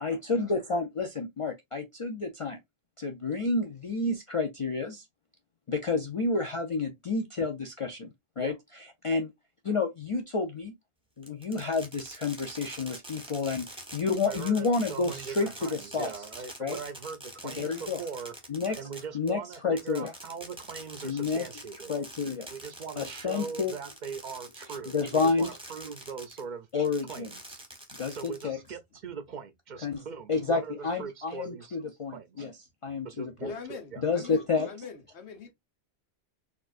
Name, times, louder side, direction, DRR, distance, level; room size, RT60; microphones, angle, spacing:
voice 1, 0.0-2.6 3.0-5.0 5.7-8.1 8.4-9.3 9.6-10.7 11.2-16.3 16.6-16.8 17.4-18.0 18.5-18.8 19.1-20.1 21.0-21.4 21.9-22.5 23.0-23.8 24.9-25.5 26.7-27.3 28.0-28.6 29.8-30.0 30.3-32.5 32.8-33.5 34.0-34.7, left 4 dB, 55° left, 0.3 m, -30 dB
Fireworks, 11.2-26.4 26.8-28.7, right 1 dB, 5° right, 0.8 m, -45 dB
voice 2, 14.3-18.3 18.8-21.9 22.5-26.7 27.1-27.6 28.1-31.8 32.1-32.4 33.1-34.0, right 6 dB, 55° right, 0.6 m, -41 dB
voice 3, 33.4-35.5, left 5 dB, 85° left, 1.2 m, -43 dB
4.3 x 2.5 x 2.4 m
omnidirectional pair, 1.1 m